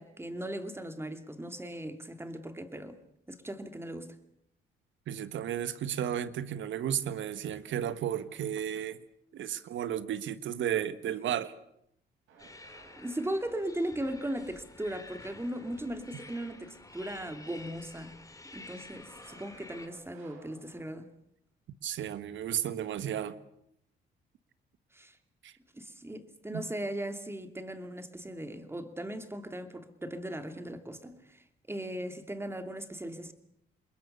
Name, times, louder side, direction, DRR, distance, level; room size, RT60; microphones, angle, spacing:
voice 1, 0.0-3.0 3.3-4.1 13.0-18.2 18.5-21.1 24.9-25.2 25.7-33.3, right 1 dB, 10° right, 8 dB, 2.7 m, -38 dB
voice 2, 5.1-9.0 9.3-11.5 21.8-23.4 25.4-25.5 26.5-26.6, right 10 dB, 70° right, 13 dB, 1.6 m, -33 dB
sound 1, 7.9-8.7 12.3-13.8 15.3-15.8 16.1-16.2 17.3-18.1 19.2-20.8, right 4 dB, 90° right, 7.9 m, -59 dB
sound 2, 12.4-19.9, left 2 dB, 15° left, 3.2 m, -50 dB
27.5 x 21.5 x 6.9 m, 0.75 s
cardioid pair, 90°, 20 cm